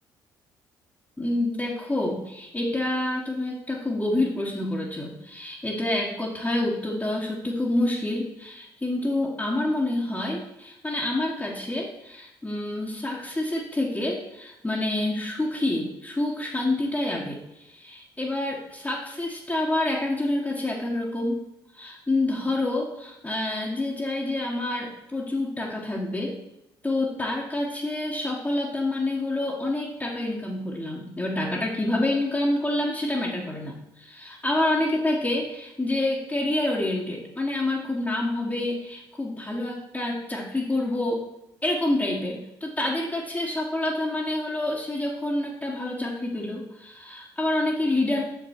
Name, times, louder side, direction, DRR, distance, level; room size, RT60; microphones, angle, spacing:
voice 1, 1.2-21.4 21.7-26.3 26.8-41.2 41.6-48.2, left 1 dB, 15° left, -5 dB, 1.6 m, -27 dB
6.6 x 5.8 x 4.5 m, 0.86 s
hypercardioid pair, 55°, 10 cm